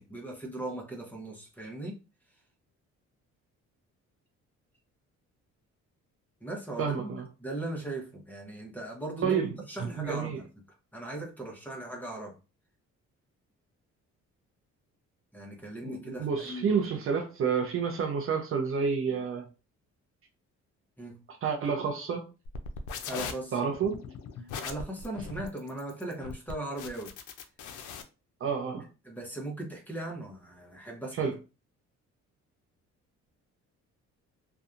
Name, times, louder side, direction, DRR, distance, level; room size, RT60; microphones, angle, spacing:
voice 1, 0.0-2.0 6.4-10.4 10.9-12.4 15.3-16.8 21.0-21.2 23.0-23.6 24.4-27.1 29.0-31.3, right 1 dB, 5° left, 0.8 m, -39 dB
voice 2, 6.8-7.2 9.2-9.5 9.8-10.4 15.8-19.5 21.4-22.3 23.5-24.1 28.4-28.9 31.2-31.3, right 6 dB, 45° right, 0.5 m, -29 dB
sound 1, 22.4-28.0, left 6 dB, 80° left, 0.5 m, -40 dB
2.6 x 2.3 x 2.4 m
cardioid pair, 90°, 30 cm